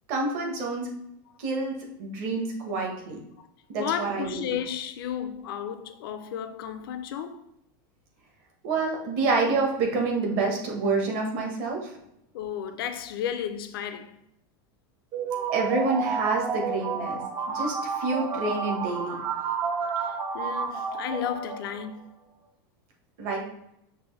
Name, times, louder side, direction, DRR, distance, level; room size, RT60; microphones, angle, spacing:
voice 1, 0.1-0.9 1.4-3.2 3.7-4.6 8.6-11.9 15.5-17.2 17.5-19.2 23.2-23.4, right 3 dB, 45° right, 1.2 m, -28 dB
voice 2, 3.8-7.5 12.3-14.2 20.0-22.2, left 9 dB, 80° left, 0.5 m, -33 dB
sound 1, 15.1-21.9, right 5 dB, 25° right, 0.4 m, -30 dB
6.0 x 2.6 x 3.2 m
supercardioid pair, 170°, 12 cm